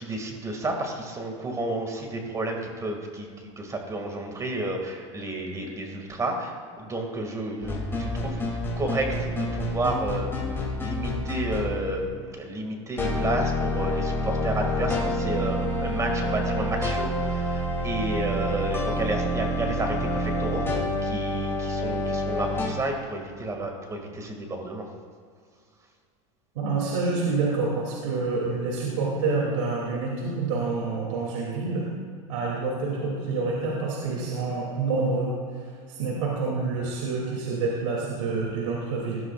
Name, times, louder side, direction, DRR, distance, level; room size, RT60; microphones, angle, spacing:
voice 1, 0.0-3.3 3.6-8.5 8.8-20.7 21.0-24.8, right 2 dB, 20° right, 2 dB, 2.2 m, -31 dB
sound 1, 7.6-11.8 13.0-22.7, left 1 dB, 15° left, 2.8 m, -28 dB
voice 2, 26.5-31.8 32.3-35.3 35.9-39.2, right 3 dB, 75° right, -3 dB, 2.8 m, -27 dB
17.5 x 12.5 x 2.5 m, 2.1 s
hypercardioid pair, 115°, 16 cm